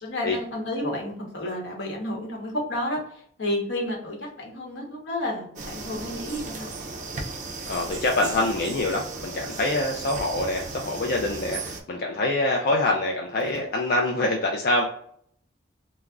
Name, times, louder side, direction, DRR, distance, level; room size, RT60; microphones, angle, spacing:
voice 1, 0.0-3.0 3.4-6.8, left 1 dB, 80° left, -1 dB, 0.9 m, -31 dB
sound 1, 5.6-11.8, right 3 dB, 40° right, 0.4 m, -36 dB
voice 2, 7.7-14.8, left 2 dB, 55° left, 0 dB, 0.3 m, -25 dB
2.3 x 2.0 x 3.5 m, 0.65 s
head